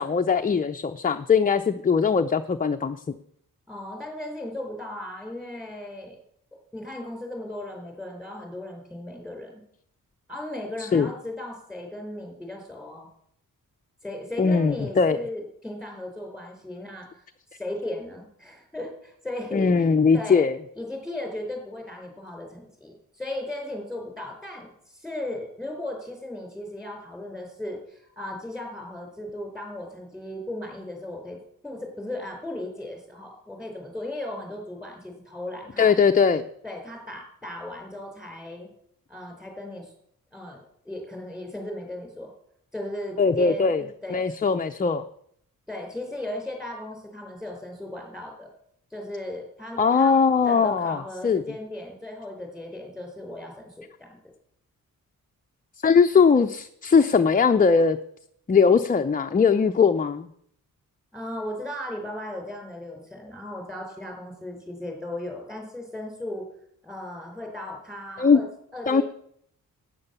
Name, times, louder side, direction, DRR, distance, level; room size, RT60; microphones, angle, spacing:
voice 1, 0.0-3.2 10.8-11.1 14.4-15.2 19.5-20.6 35.8-36.5 43.2-43.8 44.1-45.0 49.8-51.4 55.8-58.0 58.5-60.3 68.2-68.4 68.9-69.0, left 5 dB, 25° left, 6 dB, 0.5 m, -20 dB
voice 2, 3.7-6.2 6.7-9.5 10.3-13.1 14.0-17.2 17.5-20.4 20.8-31.4 31.6-35.9 36.6-38.7 39.1-39.9 40.3-42.3 42.7-44.2 45.7-48.5 48.9-50.1 50.4-54.2 61.1-66.4 66.8-68.5 68.7-69.0, left 1 dB, ahead, 2 dB, 4.7 m, -36 dB
12.0 x 9.1 x 7.0 m, 0.69 s
wide cardioid pair, 130°, 34 cm